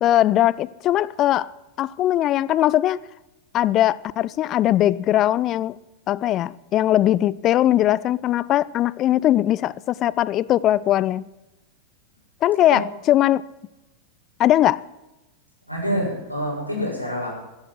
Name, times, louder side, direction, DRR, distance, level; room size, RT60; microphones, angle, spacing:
voice 1, 0.0-1.5 1.8-3.0 3.5-5.8 6.1-11.3 12.4-13.4 14.4-14.8, left 13 dB, 35° left, 0.4 m, -20 dB
voice 2, 15.7-17.3, equal, 90° right, 6.9 m, -26 dB
16.0 x 13.0 x 6.1 m
figure-of-eight pair, 90°, 0 cm